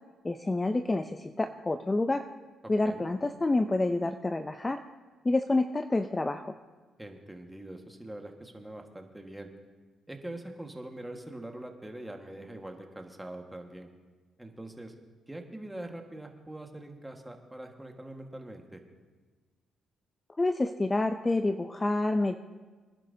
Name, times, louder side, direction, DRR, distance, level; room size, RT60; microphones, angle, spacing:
voice 1, 0.2-2.2 2.7-4.8 5.2-6.5 20.4-22.4, left 2 dB, 20° left, 8 dB, 0.5 m, -28 dB
voice 2, 7.0-9.5 10.1-13.9 14.4-14.9 15.3-18.8, right 1 dB, 10° right, 3 dB, 1.6 m, -43 dB
25.0 x 11.0 x 2.8 m, 1.4 s
cardioid pair, 90°, 0 cm